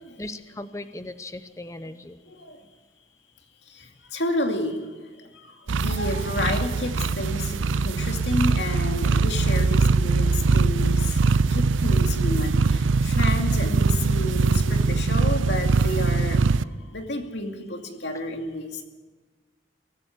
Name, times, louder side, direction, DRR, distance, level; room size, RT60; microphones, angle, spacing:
voice 1, 0.2-2.2, left 2 dB, 15° left, 11 dB, 0.7 m, -37 dB
voice 2, 2.3-2.6 3.7-4.9 5.2-18.8, left 1 dB, 65° left, 4 dB, 2.5 m, -31 dB
sound 1, 5.7-16.6, right 4 dB, 80° right, 0.5 m, -22 dB
23.5 x 14.5 x 8.4 m, 1.3 s
head